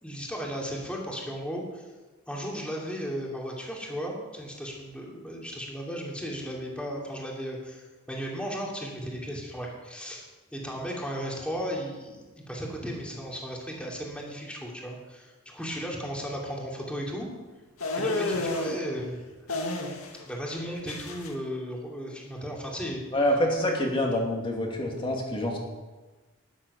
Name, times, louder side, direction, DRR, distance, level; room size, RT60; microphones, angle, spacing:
voice 1, 0.0-1.9 2.3-17.3 18.0-19.2 19.5-19.6 20.2-23.0 23.8-23.9, equal, 5° left, -2 dB, 2.7 m, -35 dB
sound 1, 17.8-18.8 19.5-20.2 20.5-21.3, left 2 dB, 80° left, 2.0 m, -30 dB
voice 2, 23.1-25.6, left 1 dB, 25° left, 0 dB, 2.4 m, -26 dB
12.0 x 11.0 x 6.9 m, 1.2 s
head